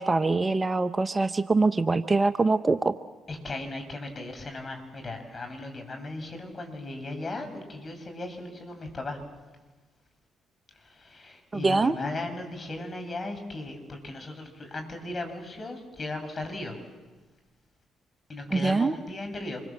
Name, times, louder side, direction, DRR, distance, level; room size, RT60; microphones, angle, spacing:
voice 1, 0.0-2.9 11.5-11.9 18.5-19.0, right 3 dB, 30° right, 11 dB, 0.9 m, -24 dB
voice 2, 3.3-9.2 10.8-16.8 18.3-19.6, left 2 dB, 40° left, 5 dB, 7.2 m, -37 dB
26.5 x 24.0 x 7.7 m, 1.2 s
hypercardioid pair, 50°, 0 cm